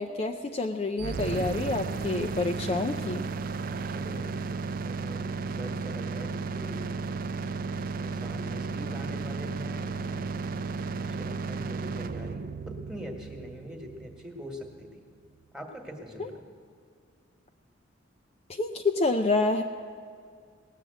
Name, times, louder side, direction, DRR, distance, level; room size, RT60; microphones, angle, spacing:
voice 1, 0.0-3.2 16.2-16.3 18.5-19.6, left 2 dB, 30° left, 5 dB, 0.5 m, -28 dB
sound 1, 1.0-14.9, right 4 dB, 45° right, 0.4 m, -34 dB
voice 2, 3.9-4.5 4.8-6.8 8.0-10.4 11.0-15.0 15.5-16.4, equal, 5° right, 3 dB, 1.5 m, -43 dB
18.5 x 7.5 x 7.7 m, 2.2 s
head